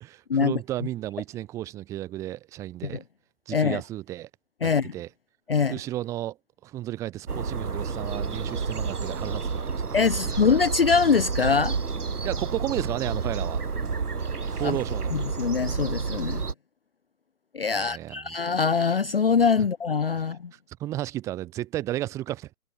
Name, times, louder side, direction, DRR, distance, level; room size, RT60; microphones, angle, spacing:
voice 1, 0.0-3.0 3.5-4.3 4.6-5.1 5.7-6.4 6.6-10.3 12.2-13.6 14.5-15.2 17.7-18.4 19.6-19.7 20.5-22.5, right 14 dB, 5° right, 1.4 m, -33 dB
voice 2, 3.5-3.8 4.6-4.9 5.5-5.8 9.9-11.8 14.6-14.8 15.1-16.4 17.5-20.5, left 5 dB, 40° left, 0.6 m, -23 dB
sound 1, 7.3-16.5, right 5 dB, 85° right, 2.8 m, -30 dB
hypercardioid pair, 160°, 44 cm